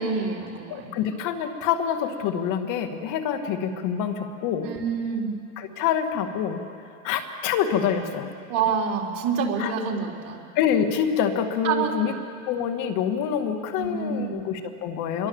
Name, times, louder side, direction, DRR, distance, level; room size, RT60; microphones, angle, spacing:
voice 1, 0.0-0.9 4.6-5.4 8.5-10.4 11.6-12.1 13.8-14.5 15.2-15.3, right 5 dB, 50° right, 0 dB, 4.0 m, -27 dB
voice 2, 0.7-4.7 5.6-6.6 7.0-8.3 9.6-9.7 10.6-12.1 12.5-15.3, left 8 dB, 45° left, 6 dB, 2.3 m, -26 dB
26.0 x 22.5 x 7.3 m, 2.5 s
supercardioid pair, 140°, 42 cm